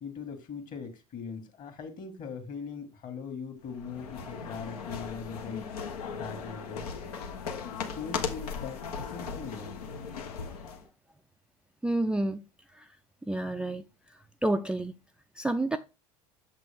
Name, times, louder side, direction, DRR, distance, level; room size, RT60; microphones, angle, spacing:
voice 1, 0.0-6.9 7.5-9.8, left 6 dB, 45° left, 2.2 m, -41 dB
sound 1, 3.7-10.8, left 5 dB, 80° left, 1.2 m, -38 dB
voice 2, 11.8-12.4 13.3-13.8 14.4-14.9 15.4-15.8, right 2 dB, 5° right, 0.4 m, -28 dB
6.8 x 6.0 x 3.6 m
hypercardioid pair, 80°, 19 cm